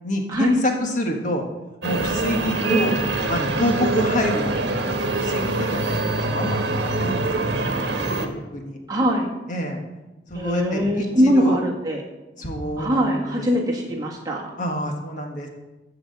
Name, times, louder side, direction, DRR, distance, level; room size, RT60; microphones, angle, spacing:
voice 1, 0.0-1.4 1.8-3.0 3.3-7.2 8.2-8.8 9.5-9.8 10.3-11.6 12.4-13.5 14.6-15.5, equal, 45° left, 2 dB, 1.7 m, -27 dB
sound 1, 1.8-8.3, right 2 dB, 65° right, 1.4 m, -24 dB
voice 2, 8.9-9.3 10.3-12.0 12.8-14.5, equal, 20° right, -2 dB, 2.0 m, -22 dB
14.0 x 4.9 x 8.1 m, 1.0 s
head